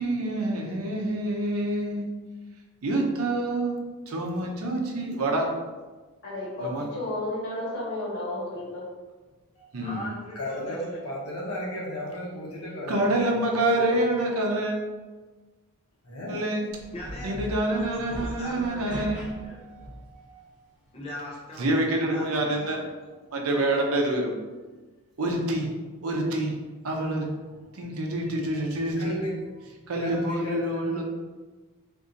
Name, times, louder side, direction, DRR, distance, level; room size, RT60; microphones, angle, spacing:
voice 1, 0.0-2.1 2.8-3.8 4.1-5.5 6.6-6.9 9.7-10.0 12.9-14.8 16.3-16.7 17.2-19.3 21.6-22.8 23.3-24.3 25.2-25.7 26.0-26.5 26.8-27.3 27.7-29.2 29.9-31.0, right 1 dB, 70° right, 0 dB, 0.6 m, -27 dB
voice 2, 6.2-8.9, left 1 dB, 55° left, -7 dB, 1.4 m, -32 dB
voice 3, 9.8-11.1 16.9-19.1 19.4-19.6 20.9-22.9, left 1 dB, 25° left, -5 dB, 0.6 m, -40 dB
voice 4, 10.3-13.4 13.7-13.9 16.0-16.4 19.1-20.5 23.2-23.3 28.3-28.6 29.0-29.3 30.0-31.0, equal, 75° left, -3 dB, 0.9 m, -36 dB
sound 1, 16.7-20.2, equal, 5° right, 1.0 m, -39 dB
2.6 x 2.6 x 3.8 m, 1.3 s
head